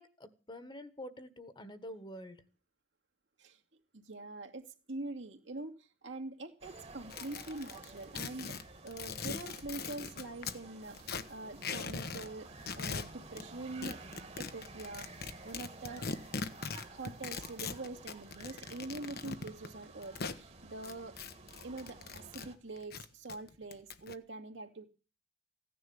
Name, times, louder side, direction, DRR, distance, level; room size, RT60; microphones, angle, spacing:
voice 1, 0.0-2.4, equal, 25° left, 12 dB, 1.5 m, -47 dB
voice 2, 3.9-8.6 8.8-12.5 12.8-14.0 14.4-15.1 15.4-16.1 16.9-21.2 21.6-24.8, right 2 dB, 75° right, 3 dB, 2.5 m, -44 dB
sound 1, 6.6-22.6, right 3 dB, 35° right, 1.7 m, -53 dB
sound 2, 7.1-10.6 10.9-12.3 12.6-13.4 13.8-20.4 20.8-22.5 22.8-24.1, left 5 dB, 55° left, 1.1 m, -41 dB
16.0 x 10.0 x 7.2 m, 0.36 s
head